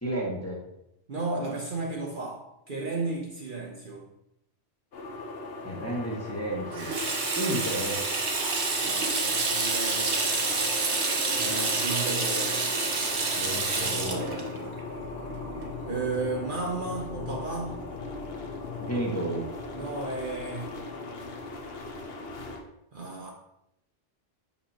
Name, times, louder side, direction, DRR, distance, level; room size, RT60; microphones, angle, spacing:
voice 1, 0.0-0.6 5.6-6.9 7.3-8.0 13.4-14.3 18.8-19.5, right 1 dB, 15° left, -4 dB, 1.3 m, -32 dB
voice 2, 1.1-4.0 8.8-10.4 11.4-12.8 15.9-17.8 19.7-20.8 22.9-23.3, right 3 dB, 50° right, -2 dB, 0.9 m, -34 dB
sound 1, 4.9-22.6, left 3 dB, 55° left, 1.0 m, -39 dB
Water tap faucet / Sink (filling or washing), 6.7-16.0, right 3 dB, 65° right, 1.3 m, -28 dB
6.7 x 5.5 x 2.8 m, 0.81 s
omnidirectional pair, 1.2 m